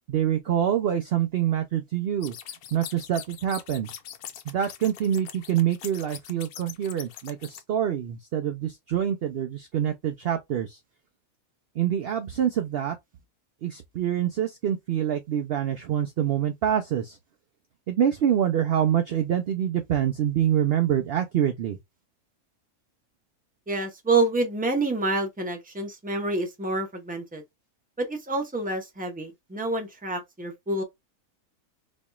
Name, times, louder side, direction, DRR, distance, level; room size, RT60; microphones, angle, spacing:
voice 1, 0.1-2.3 2.7-3.9 4.5-10.8 11.8-13.0 13.6-17.2 17.9-21.8, right 10 dB, 75° right, 0.5 m, -26 dB
sound 1, 2.2-7.6, left 10 dB, 75° left, 1.1 m, -42 dB
voice 2, 23.7-27.4 28.0-30.8, right 2 dB, 10° right, 0.6 m, -27 dB
4.1 x 2.9 x 2.3 m
omnidirectional pair, 1.6 m